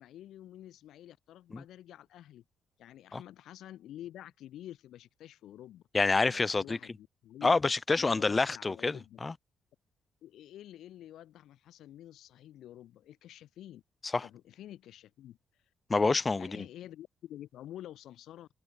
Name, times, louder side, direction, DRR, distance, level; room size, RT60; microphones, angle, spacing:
voice 1, 0.0-2.4 2.8-5.8 6.3-7.5 8.0-9.2 10.2-13.8 14.2-15.4 16.4-18.5, left 12 dB, 80° left, 2.9 m, -49 dB
voice 2, 5.9-6.8 7.4-9.3 14.0-14.3 15.9-16.6, left 3 dB, 25° left, 0.5 m, -28 dB
cardioid pair, 90°, 0 cm